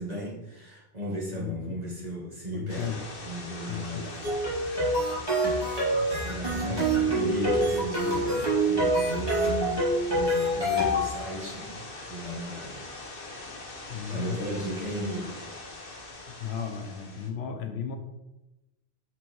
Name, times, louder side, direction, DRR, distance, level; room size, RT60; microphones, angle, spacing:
voice 1, 0.0-5.1 6.2-12.8 14.1-15.4, equal, 40° right, -5 dB, 2.2 m, -36 dB
voice 2, 1.4-1.8 2.5-3.0 3.7-4.0 5.9-6.3 6.7-6.8 13.9-14.5 16.4-18.0, left 7 dB, 80° left, 6 dB, 1.0 m, -35 dB
sound 1, 2.7-17.3, left 2 dB, 60° left, 1.3 m, -42 dB
sound 2, 4.2-11.1, right 1 dB, 25° right, 2.6 m, -26 dB
6.2 x 4.6 x 4.6 m, 0.98 s
omnidirectional pair, 1.0 m